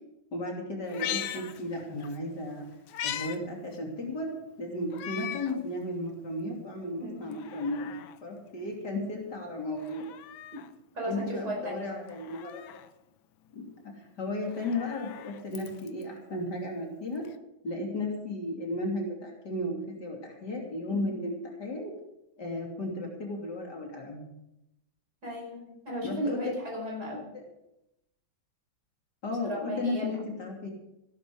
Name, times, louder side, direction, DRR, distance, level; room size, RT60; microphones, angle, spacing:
voice 1, 0.3-2.7 3.0-4.3 4.6-7.9 8.2-10.0 11.0-12.6 13.5-13.6 14.2-17.2 17.6-21.9 22.4-24.2 26.0-26.4 27.3-27.4 29.2-30.7, left 1 dB, 55° left, 0 dB, 3.5 m, -34 dB
Meow, 0.8-2.2 2.5-3.4 3.7-3.8 4.9-5.6 6.1-6.2 7.2-8.2 9.7-10.7 12.1-12.9 14.4-16.0 17.3-17.4, left 11 dB, 80° left, 1.6 m, -39 dB
voice 2, 7.0-7.4 10.9-12.0 20.9-21.3 25.2-27.3 29.4-30.1, equal, 50° right, -1 dB, 5.7 m, -36 dB
16.0 x 12.5 x 5.0 m, 0.86 s
omnidirectional pair, 2.2 m